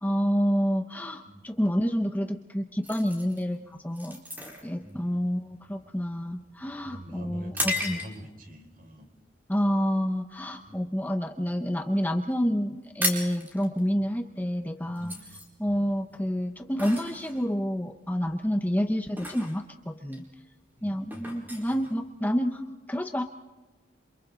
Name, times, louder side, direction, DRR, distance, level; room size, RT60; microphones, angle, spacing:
voice 1, 0.0-4.2 4.6-8.0 9.5-15.1 15.6-20.2 20.8-23.2, equal, 10° left, 6 dB, 0.7 m, -28 dB
voice 2, 1.3-1.6 4.7-5.2 5.7-5.8 6.6-9.1 10.7-10.8 14.8-15.2 15.6-15.9 20.7-21.3, right 1 dB, 45° right, 6 dB, 3.6 m, -45 dB
sound 1, 2.8-8.4 9.0-9.2 9.7-10.0 10.4-11.5 11.8-11.9 12.1-12.3 12.6-22.6, left 1 dB, 10° right, 4.2 m, -36 dB
28.5 x 27.0 x 4.0 m, 1.2 s
head